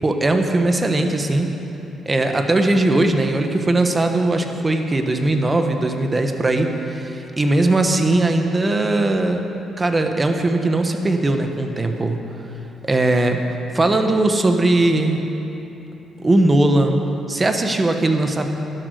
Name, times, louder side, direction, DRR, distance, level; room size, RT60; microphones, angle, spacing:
voice 1, 0.0-1.5 2.0-9.4 9.8-12.2 12.8-13.4 13.7-15.3 16.2-17.0 17.3-18.5, right 2 dB, 25° right, 5 dB, 1.2 m, -19 dB
12.0 x 12.0 x 6.6 m, 3.0 s
cardioid pair, 90°, 0 cm